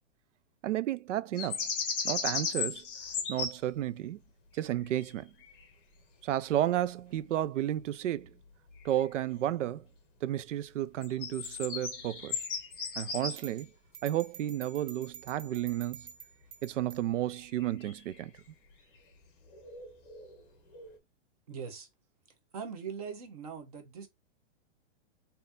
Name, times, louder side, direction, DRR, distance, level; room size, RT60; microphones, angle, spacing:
voice 1, 0.6-1.6 2.0-2.8 3.3-4.2 4.5-5.3 6.2-8.3 8.8-9.9 10.2-12.4 13.0-13.7 14.0-16.1 16.6-18.3, right 12 dB, 80° right, 0.5 m, -32 dB
sound 1, 1.4-3.6 4.7-5.1 5.4-5.6 8.8-9.0 11.0-13.4 17.6-18.2 19.5-20.4 20.7-21.0, left 5 dB, 15° left, 0.9 m, -36 dB
sound 2, 13.4-17.1, right 8 dB, 60° right, 1.8 m, -49 dB
voice 2, 21.5-21.9 22.5-24.1, right 6 dB, 30° right, 0.9 m, -41 dB
4.1 x 2.7 x 3.5 m
hypercardioid pair, 175°, 37 cm